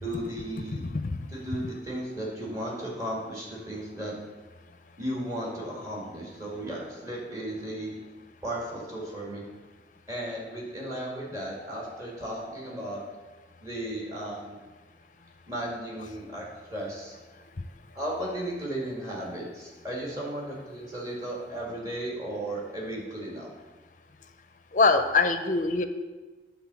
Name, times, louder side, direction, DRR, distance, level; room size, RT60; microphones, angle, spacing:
voice 1, 0.0-0.8 1.3-4.1 5.0-8.0 8.4-9.4 10.1-13.0 13.6-14.6 15.5-17.2 17.9-23.5, right 1 dB, 20° right, -4 dB, 2.2 m, -35 dB
voice 2, 0.7-1.2 24.7-25.9, left 3 dB, 45° left, 9 dB, 0.6 m, -23 dB
9.8 x 4.0 x 7.0 m, 1.3 s
head